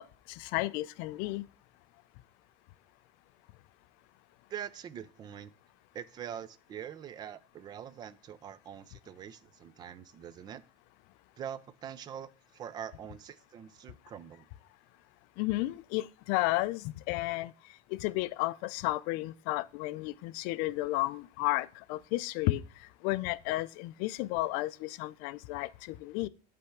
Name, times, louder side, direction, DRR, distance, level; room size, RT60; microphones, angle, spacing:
voice 1, 0.0-1.5 15.4-26.3, left 19 dB, 55° left, 0.4 m, -33 dB
voice 2, 4.5-5.5 5.9-10.6 11.4-14.4, right 9 dB, 25° right, 0.4 m, -44 dB
8.3 x 3.4 x 5.8 m
cardioid pair, 165°, 17 cm